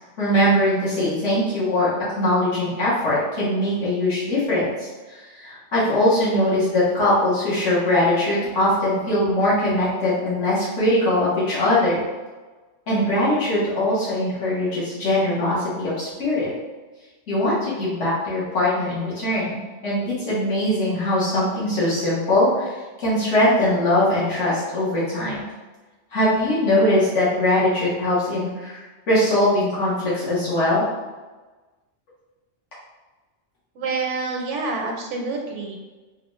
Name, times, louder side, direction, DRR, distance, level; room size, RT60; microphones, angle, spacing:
voice 1, 0.2-1.9 2.2-4.7 5.4-12.0 12.9-16.5 17.3-22.7 23.0-25.4 26.1-30.8, left 1 dB, 80° left, -9 dB, 1.5 m, -21 dB
voice 2, 33.7-35.8, right 3 dB, 80° right, 1 dB, 0.9 m, -27 dB
3.6 x 2.3 x 3.0 m, 1.2 s
omnidirectional pair, 1.2 m